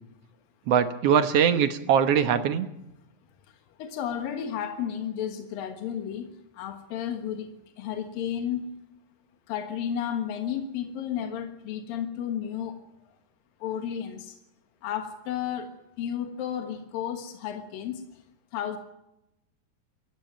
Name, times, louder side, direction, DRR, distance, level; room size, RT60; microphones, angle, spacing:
voice 1, 0.7-2.7, right 8 dB, 65° right, 10 dB, 1.6 m, -22 dB
voice 2, 3.8-7.5 7.8-8.7 9.5-12.8 13.6-14.4 14.8-15.7 16.0-18.0 18.5-18.8, left 9 dB, 80° left, 6 dB, 3.2 m, -32 dB
19.5 x 15.0 x 9.2 m, 0.87 s
omnidirectional pair, 4.0 m